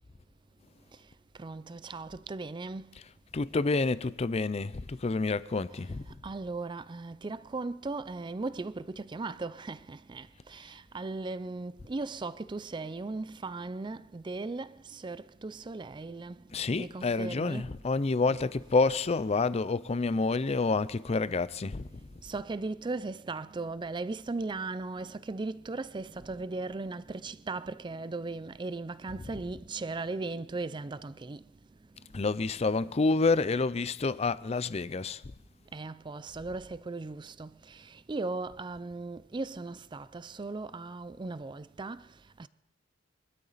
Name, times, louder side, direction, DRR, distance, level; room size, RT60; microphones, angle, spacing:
voice 1, 1.4-2.9 5.7-17.7 18.3-18.5 19.9-20.0 20.3-20.4 20.7-20.8 22.0-31.5 32.2-32.3 32.5-32.9 35.7-42.5, right 3 dB, 25° right, 0.4 m, -38 dB
voice 2, 3.3-6.0 16.5-22.0 29.3-29.4 32.1-35.2, left 3 dB, 35° left, 0.5 m, -28 dB
23.5 x 12.5 x 4.1 m
head